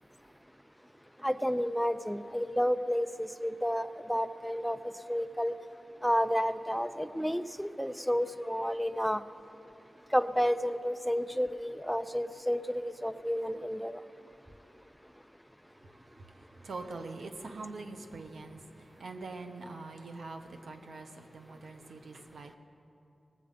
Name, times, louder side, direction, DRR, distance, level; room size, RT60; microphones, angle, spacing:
voice 1, 1.2-4.8 5.1-5.5 6.0-9.2 10.1-14.0, equal, ahead, 11 dB, 0.4 m, -31 dB
voice 2, 15.8-22.6, right 3 dB, 85° right, 5 dB, 0.9 m, -44 dB
20.0 x 7.6 x 5.1 m, 2.8 s
wide cardioid pair, 90°, 0 cm